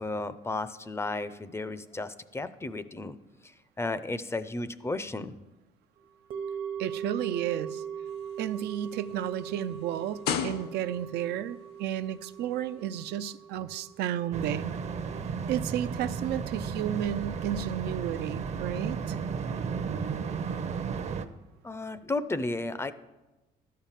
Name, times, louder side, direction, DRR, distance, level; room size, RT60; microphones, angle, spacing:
voice 1, 0.0-3.2 3.4-3.5 3.8-5.3 21.6-22.9, left 2 dB, 15° left, 13 dB, 0.5 m, -33 dB
sound 1, 6.3-16.6 16.8-16.9, right 8 dB, 60° right, 1.0 m, -41 dB
voice 2, 6.8-7.8 8.4-14.7 15.5-19.2, right 11 dB, 75° right, 12 dB, 0.5 m, -32 dB
sound 2, 8.1-11.2 12.1-12.2, left 7 dB, 80° left, 0.8 m, -35 dB
sound 3, 14.3-21.3, right 6 dB, 40° right, 0.7 m, -34 dB
12.5 x 5.7 x 7.4 m, 1.1 s
cardioid pair, 110°, 17 cm